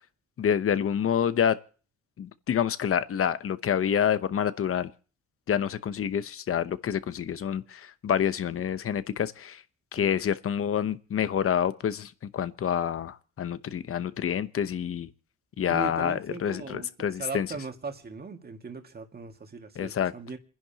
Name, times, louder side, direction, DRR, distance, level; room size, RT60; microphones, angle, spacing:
voice 1, 0.4-1.6 2.2-4.9 5.5-9.6 9.9-15.1 15.6-17.5 19.8-20.1, left 8 dB, 45° left, 0.9 m, -27 dB
voice 2, 15.7-16.9 17.2-20.4, right 4 dB, 30° right, 2.0 m, -39 dB
28.5 x 10.5 x 2.9 m
cardioid pair, 90°, 30 cm